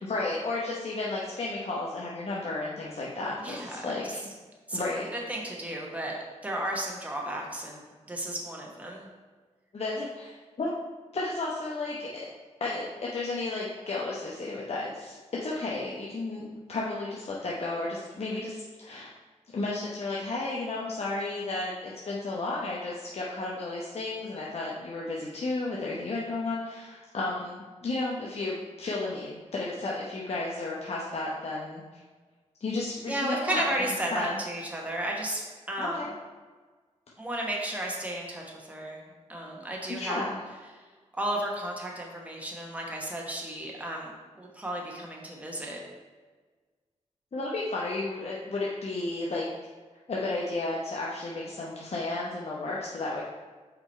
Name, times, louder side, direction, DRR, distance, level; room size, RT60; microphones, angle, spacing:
voice 1, 0.0-4.2 4.7-5.1 9.7-10.7 11.1-12.1 12.6-19.1 19.5-31.8 32.6-33.8 34.1-34.3 35.8-36.1 39.9-40.4 47.3-49.5 50.1-53.2, left 2 dB, 60° left, -5 dB, 0.9 m, -33 dB
voice 2, 3.4-3.8 4.7-4.8 5.3-6.2 6.4-7.8 8.1-9.1 33.1-36.0 37.2-39.0 39.3-40.2 41.1-44.1 44.4-45.8, right 1 dB, 10° right, -1 dB, 1.2 m, -33 dB
5.6 x 3.9 x 4.4 m, 1.4 s
cardioid pair, 70°, 12 cm